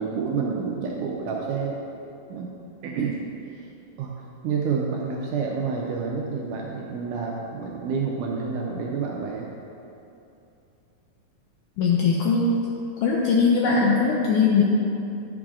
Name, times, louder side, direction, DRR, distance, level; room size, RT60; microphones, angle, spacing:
voice 1, 0.0-1.8 2.3-2.5 2.8-3.2 3.6-3.7 4.0-4.1 4.4-9.5, right 5 dB, 80° right, -2 dB, 1.9 m, -28 dB
voice 2, 11.8-12.6 13.0-14.6, left 5 dB, 90° left, -3 dB, 1.8 m, -20 dB
10.5 x 6.1 x 2.4 m, 2.8 s
omnidirectional pair, 4.1 m